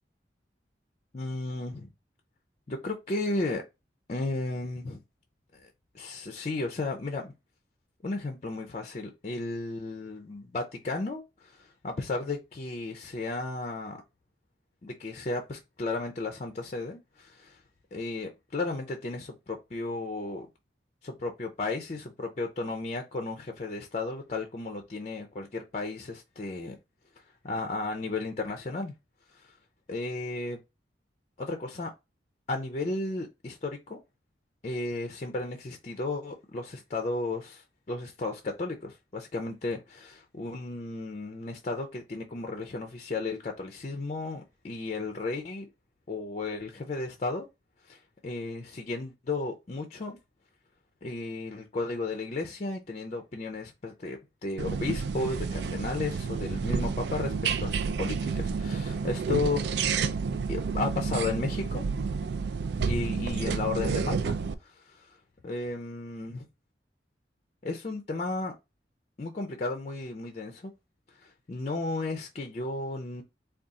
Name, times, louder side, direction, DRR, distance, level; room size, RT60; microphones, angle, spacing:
voice 1, 1.1-1.9 2.7-3.6 4.1-5.0 5.5-7.3 8.0-14.0 14.8-17.6 17.9-20.5 21.0-26.8 27.4-28.9 29.3-29.6 29.9-30.6 31.4-31.9 32.5-34.0 34.6-45.7 46.1-47.5 47.8-50.2 51.0-57.3 57.6-59.6 60.5-61.8 62.8-64.4 64.6-65.2 65.4-66.5 67.6-68.5 69.2-70.7 71.1-73.2, left 3 dB, 35° left, 0.5 m, -34 dB
sound 1, 54.6-64.5, right 5 dB, 65° right, 0.4 m, -30 dB
4.0 x 2.3 x 3.6 m
head